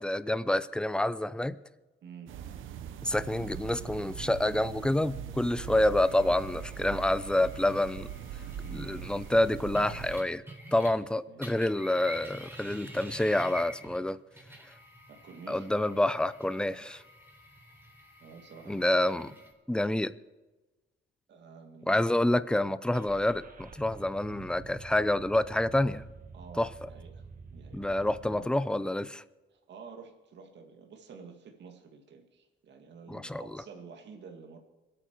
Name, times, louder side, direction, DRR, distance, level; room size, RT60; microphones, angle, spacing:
voice 1, 0.0-1.6 3.0-8.1 8.7-10.4 10.7-14.2 15.5-17.0 18.7-19.3 19.7-20.1 21.9-26.0 26.6-26.7 27.7-29.2 33.1-33.4, left 1 dB, 5° left, 15 dB, 0.6 m, -28 dB
voice 2, 2.0-2.3 8.6-9.0 11.3-11.4 15.1-15.7 16.7-16.9 18.2-18.8 19.2-19.4 21.3-22.0 26.3-27.9 28.3-28.6 29.5-34.6, right 5 dB, 65° right, 3 dB, 2.0 m, -50 dB
sound 1, 2.3-10.2, right 9 dB, 85° right, 1.0 m, -41 dB
sound 2, 6.0-11.1 11.4-19.5, equal, 10° right, 4.1 m, -49 dB
Car / Engine starting, 22.9-28.4, right 4 dB, 45° right, 1.3 m, -48 dB
25.0 x 9.0 x 4.6 m, 1.2 s
cardioid pair, 90°, 20 cm